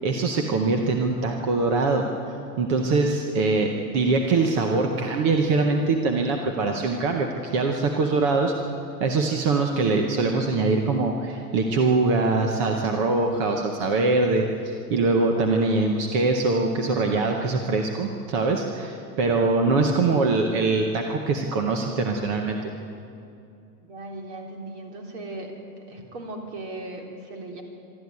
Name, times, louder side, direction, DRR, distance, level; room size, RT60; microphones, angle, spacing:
voice 1, 0.0-2.0 2.6-8.5 9.0-22.6, right 3 dB, 20° right, 3 dB, 0.6 m, -23 dB
voice 2, 23.8-25.5 25.9-27.6, right 2 dB, 40° right, 2 dB, 3.4 m, -37 dB
23.5 x 13.0 x 9.4 m, 2.6 s
supercardioid pair, 180°, 49 cm